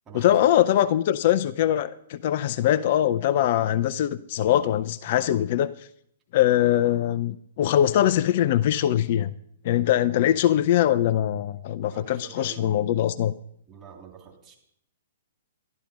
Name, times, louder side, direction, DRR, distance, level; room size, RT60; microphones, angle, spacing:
voice 1, 0.1-5.7 6.3-9.3 9.6-13.3, left 11 dB, 45° left, 14 dB, 0.5 m, -22 dB
voice 2, 11.9-12.7 13.7-14.6, right 7 dB, 20° right, 0 dB, 3.4 m, -45 dB
12.5 x 12.0 x 5.3 m, 0.70 s
figure-of-eight pair, 115°, 0 cm